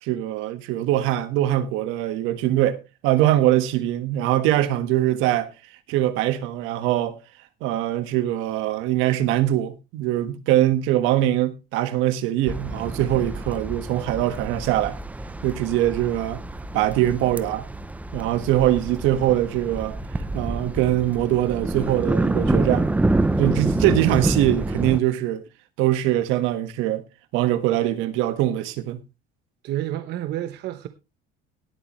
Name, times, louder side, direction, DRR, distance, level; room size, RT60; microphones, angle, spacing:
voice 1, 0.0-5.5 5.9-7.2 7.6-15.0 15.4-16.4 16.7-17.7 18.1-22.9 23.4-25.4 25.8-27.0 27.3-29.0, right 13 dB, 75° right, 1.5 m, -22 dB
sound 1, 12.5-25.0, right 2 dB, 5° right, 0.6 m, -27 dB
voice 2, 29.6-30.9, right 13 dB, 55° right, 1.0 m, -29 dB
18.0 x 8.3 x 3.1 m
cardioid pair, 125°, 21 cm